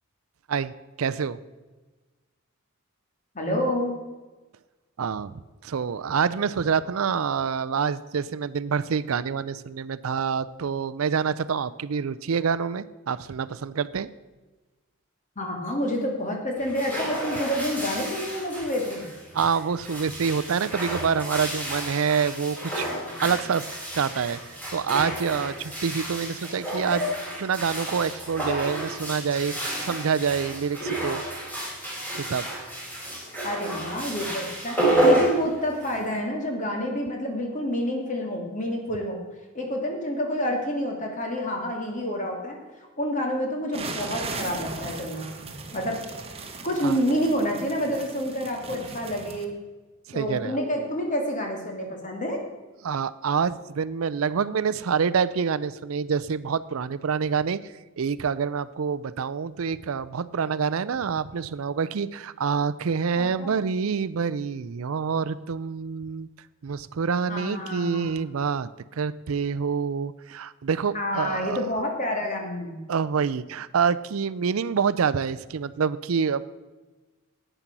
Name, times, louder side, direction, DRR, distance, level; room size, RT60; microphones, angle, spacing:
voice 1, 1.0-1.4 5.0-14.1 19.3-22.9 23.2-23.7 23.9-27.0 27.4-29.5 29.8-31.2 32.2-32.5 46.8-47.0 50.1-50.6 52.8-66.3 66.6-71.6 72.9-76.4, right 6 dB, 75° right, 16 dB, 0.5 m, -27 dB
voice 2, 3.3-4.0 15.4-19.1 26.8-27.0 33.4-39.2 39.5-45.3 45.7-46.0 46.6-49.5 50.1-52.4 63.1-63.5 67.3-68.1 70.9-72.8, equal, 35° left, 1 dB, 2.6 m, -28 dB
sound 1, 16.6-36.2, right 1 dB, 10° left, 4.0 m, -30 dB
sound 2, 43.7-49.4, right 3 dB, 30° right, 1.3 m, -38 dB
11.0 x 9.1 x 6.0 m, 1.2 s
head